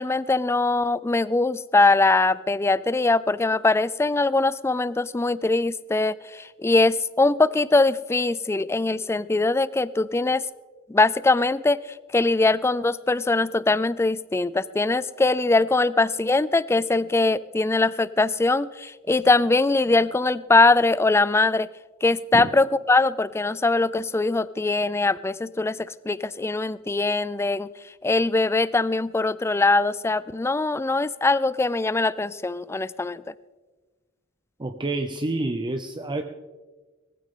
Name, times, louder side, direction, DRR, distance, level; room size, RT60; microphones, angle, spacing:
voice 1, 0.0-10.5 10.9-21.7 22.0-27.7 28.0-33.2, left 3 dB, 15° left, 18 dB, 0.3 m, -22 dB
voice 2, 34.6-36.2, right 2 dB, 20° right, 6 dB, 0.6 m, -28 dB
19.5 x 14.5 x 3.7 m, 1.3 s
head